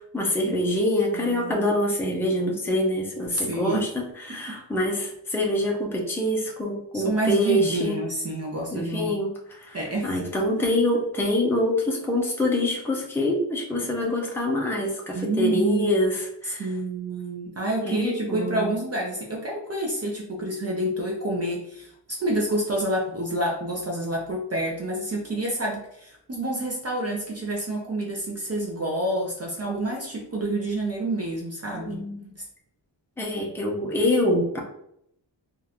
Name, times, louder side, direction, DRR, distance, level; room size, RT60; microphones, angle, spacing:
voice 1, 0.1-8.0 8.7-16.7 17.8-18.8 31.7-32.3 33.2-34.6, left 1 dB, 5° left, -1 dB, 0.6 m, -25 dB
voice 2, 1.1-1.7 3.3-3.9 4.3-4.6 6.9-9.2 9.7-10.1 15.1-16.0 16.6-21.9 22.2-32.0, right 1 dB, 35° right, -2 dB, 0.6 m, -28 dB
3.7 x 2.4 x 2.9 m, 0.73 s
wide cardioid pair, 160°, 44 cm